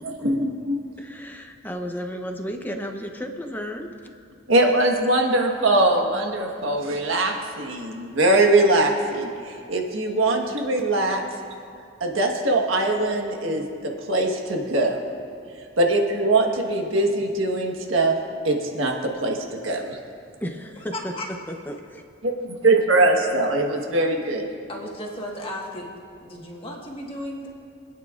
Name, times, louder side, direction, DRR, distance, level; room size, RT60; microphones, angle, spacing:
voice 1, 0.0-0.8 4.5-11.2 12.0-15.0 15.8-18.2 18.4-20.0 22.6-24.5, right 2 dB, 85° right, 2 dB, 1.4 m, -22 dB
voice 2, 1.0-3.9 20.4-22.0, equal, 10° left, 4 dB, 0.8 m, -33 dB
voice 3, 20.9-21.2 24.7-25.9 26.2-27.5, left 1 dB, 25° left, -1 dB, 1.5 m, -34 dB
26.0 x 9.2 x 2.5 m, 2.4 s
head